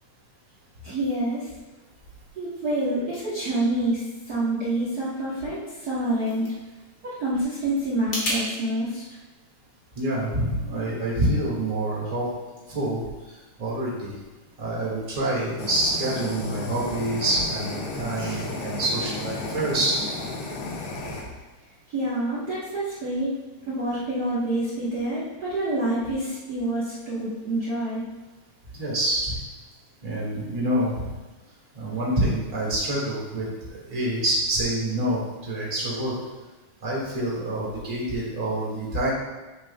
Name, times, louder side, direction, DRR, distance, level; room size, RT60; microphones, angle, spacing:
voice 1, 0.8-1.5 2.4-4.0 4.3-6.4 7.0-9.0 21.9-23.3 23.7-28.0, right 1 dB, 80° right, -10 dB, 0.8 m, -27 dB
sound 1, 5.8-8.4, equal, 35° left, 1.5 m, -34 dB
voice 2, 9.9-12.3 12.7-13.0 13.6-14.1 14.6-20.0 28.7-29.3 30.0-31.1 31.7-36.1 36.8-39.1, right 1 dB, 25° right, -6 dB, 0.8 m, -26 dB
Fire, 15.6-21.2, left 3 dB, 70° left, 1.2 m, -33 dB
7.5 x 6.4 x 2.2 m, 1.2 s
omnidirectional pair, 3.5 m